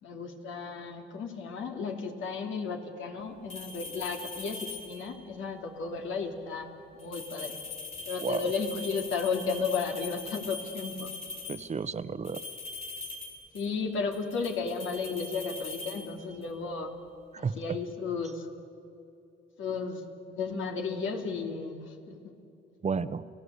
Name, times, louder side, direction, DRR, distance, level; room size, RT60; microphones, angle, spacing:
voice 1, 0.0-6.7 6.9-7.6 8.0-11.1 13.5-16.9 17.4-18.5 19.6-20.0 20.3-22.3, left 5 dB, 80° left, 3 dB, 3.0 m, -34 dB
sound 1, 3.5-5.2 7.0-11.7 12.2-13.8 14.1-16.6, left 3 dB, 35° left, 4.5 m, -41 dB
voice 2, 8.2-8.5 11.5-12.4 17.4-17.8 22.8-23.2, right 5 dB, 35° right, 13 dB, 1.0 m, -32 dB
30.0 x 17.5 x 8.3 m, 2.7 s
cardioid pair, 90°, 20 cm